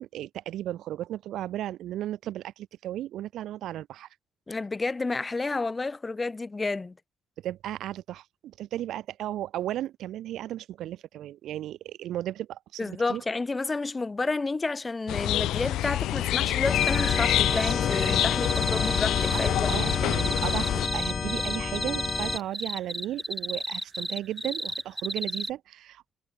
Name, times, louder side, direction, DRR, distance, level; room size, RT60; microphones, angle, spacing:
voice 1, 0.0-4.1 7.4-13.2 19.3-26.1, right 13 dB, 80° right, 1.8 m, -35 dB
voice 2, 4.5-6.9 12.8-19.7, left 3 dB, 25° left, 6.6 m, -30 dB
sound 1, 15.1-20.9, left 14 dB, 85° left, 1.4 m, -27 dB
sound 2, 16.6-22.4, left 6 dB, 40° left, 2.1 m, -30 dB
sound 3, 16.8-25.5, right 1 dB, 5° right, 1.2 m, -32 dB
cardioid pair, 90°, 0 cm